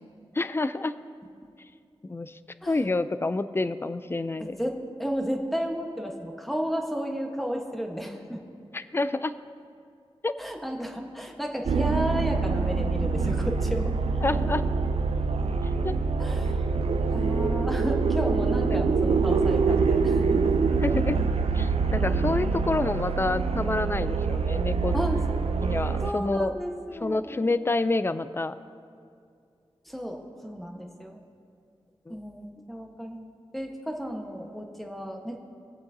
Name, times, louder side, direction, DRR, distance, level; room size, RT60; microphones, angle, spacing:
voice 1, 0.3-0.9 2.0-2.4 2.7-4.6 8.7-9.3 10.2-10.3 14.2-14.6 15.8-15.9 20.8-21.2 21.5-25.0 25.6-26.5 27.0-28.5 32.1-32.2, left 2 dB, 25° left, 13 dB, 0.4 m, -28 dB
voice 2, 4.4-8.4 10.4-14.0 16.2-16.8 17.1-20.4 24.9-25.4 26.0-27.5 29.8-31.2 32.1-35.4, equal, ahead, 2 dB, 1.1 m, -33 dB
sound 1, 11.7-26.1, right 4 dB, 90° right, 0.4 m, -25 dB
21.0 x 7.8 x 2.7 m, 2.3 s
wide cardioid pair, 70°, 10 cm